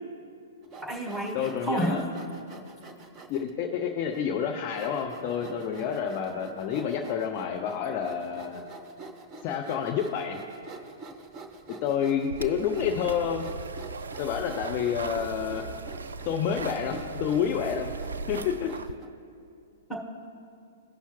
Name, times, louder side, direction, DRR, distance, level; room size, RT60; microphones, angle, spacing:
Sawing, 0.6-3.5 4.1-4.2 4.7-19.1, right 3 dB, 20° right, 0.8 m, -46 dB
voice 1, 0.8-2.1 19.9-20.0, right 1 dB, ahead, -1 dB, 1.6 m, -30 dB
voice 2, 1.3-2.0 3.3-8.6 9.4-10.4 11.8-13.4 14.2-15.6 16.3-17.9 18.3-18.7, left 7 dB, 35° left, 2 dB, 0.6 m, -29 dB
sound 1, 12.3-18.9, right 4 dB, 65° right, 0.3 m, -38 dB
16.0 x 5.6 x 3.0 m, 2.5 s
figure-of-eight pair, 110°, 0 cm